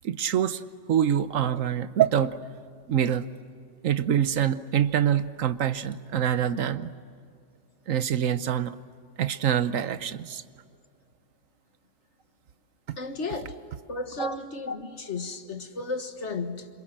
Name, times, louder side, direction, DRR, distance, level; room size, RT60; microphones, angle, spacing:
voice 1, 0.0-0.6 0.9-2.3 2.9-3.3 3.8-6.9 7.9-8.8 9.2-10.4 14.2-14.4, right 9 dB, 80° right, 13 dB, 1.3 m, -25 dB
voice 2, 13.0-13.5 13.9-16.7, left 3 dB, 60° left, 7 dB, 1.9 m, -34 dB
28.0 x 26.5 x 7.6 m, 2.3 s
omnidirectional pair, 1.3 m